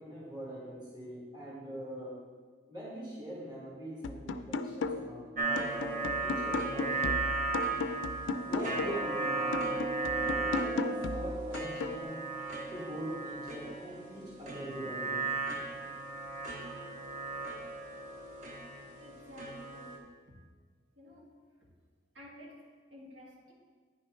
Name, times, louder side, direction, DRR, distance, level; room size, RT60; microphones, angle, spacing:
voice 1, 0.0-2.2 2.7-5.6 5.9-7.2 8.5-9.7 10.1-12.2 12.7-15.3, right 1 dB, 20° right, -6 dB, 1.7 m, -43 dB
sound 1, 4.0-5.2 5.6-9.1 9.5-12.0, left 3 dB, 85° left, 0.4 m, -36 dB
sound 2, 5.4-20.0, right 3 dB, 40° right, 0.8 m, -36 dB
voice 2, 19.0-20.0 21.0-21.4 22.1-23.5, left 1 dB, 85° right, -3 dB, 1.8 m, -52 dB
9.7 x 6.1 x 3.1 m, 1.5 s
head